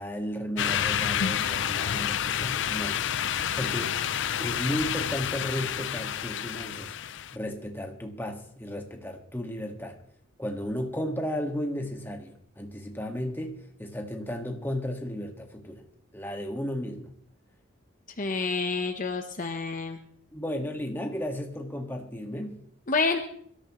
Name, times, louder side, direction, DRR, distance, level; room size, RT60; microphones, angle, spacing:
voice 1, 0.0-3.0 3.6-4.0 4.4-6.9 7.3-10.0 10.4-15.8 16.1-17.1 20.3-22.6, equal, 10° left, 2 dB, 1.7 m, -34 dB
sound 1, 0.6-7.3, left 9 dB, 60° left, 0.5 m, -29 dB
voice 2, 18.2-20.0 22.9-23.2, left 4 dB, 40° left, 5 dB, 0.9 m, -28 dB
22.5 x 13.5 x 3.1 m, 0.65 s
head